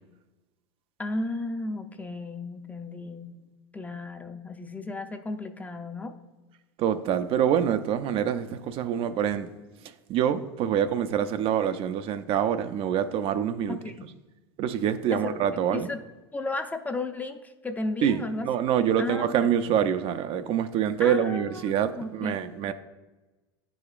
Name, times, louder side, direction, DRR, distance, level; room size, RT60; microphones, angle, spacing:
voice 1, 1.0-3.3 3.7-6.1 13.7-14.1 15.1-15.4 15.7-16.0 16.3-18.5 19.0-19.5 21.0-22.7, left 2 dB, 10° left, 7 dB, 0.5 m, -34 dB
voice 2, 6.8-9.5 10.1-13.8 14.6-15.9 18.0-22.7, right 9 dB, 45° right, 10 dB, 0.4 m, -26 dB
9.8 x 4.9 x 2.4 m, 1.1 s
hypercardioid pair, 100°, 14 cm